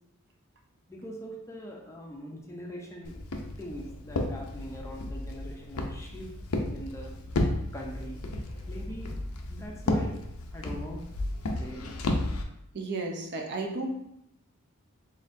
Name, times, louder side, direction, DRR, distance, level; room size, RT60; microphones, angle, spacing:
voice 1, 0.9-3.2 3.6-6.4 6.7-7.2 7.7-8.3 8.7-9.1 9.5-10.2 10.5-11.0 11.6-12.0, equal, 15° left, -1 dB, 0.5 m, -42 dB
Walk footsteps, 3.0-12.4, left 1 dB, 75° left, 0.5 m, -33 dB
voice 2, 12.7-13.9, right 2 dB, 50° right, 2 dB, 0.6 m, -33 dB
4.2 x 3.7 x 2.6 m, 0.79 s
head